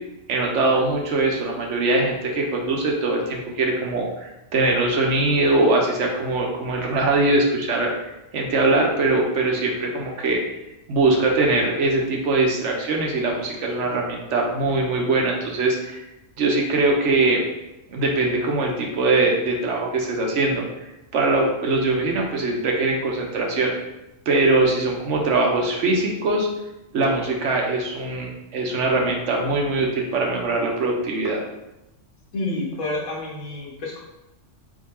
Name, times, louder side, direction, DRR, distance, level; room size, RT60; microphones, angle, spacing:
voice 1, 0.3-10.4 10.9-16.0 16.4-17.4 17.9-20.6 21.1-23.7 24.3-26.5 26.9-31.4, right 2 dB, 70° right, 0 dB, 1.1 m, -22 dB
voice 2, 32.3-34.0, left 2 dB, 80° left, -4 dB, 1.4 m, -29 dB
3.6 x 2.8 x 4.1 m, 0.94 s
omnidirectional pair, 1.3 m